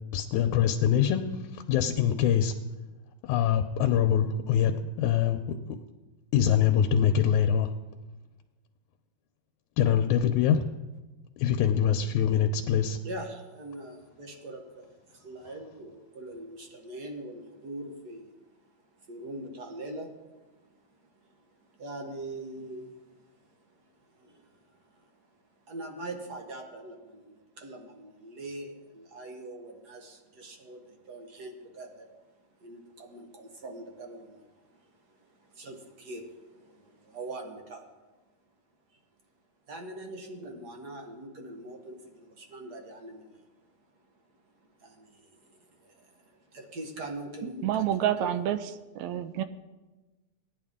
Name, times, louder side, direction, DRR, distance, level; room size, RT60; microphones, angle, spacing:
voice 1, 0.1-1.2 1.5-2.5 3.2-4.7 5.0-5.4 6.3-7.7 9.8-10.6 11.4-13.0, left 9 dB, 85° left, 6 dB, 2.0 m, -24 dB
voice 2, 13.0-32.1 32.6-37.9 38.9-39.0 39.7-43.6 44.8-47.8 48.2-48.3, right 1 dB, 55° right, 3 dB, 1.1 m, -43 dB
voice 3, 47.6-48.6 49.0-49.4, right 11 dB, 80° right, 11 dB, 1.9 m, -28 dB
17.0 x 10.0 x 3.6 m, 1.1 s
omnidirectional pair, 3.4 m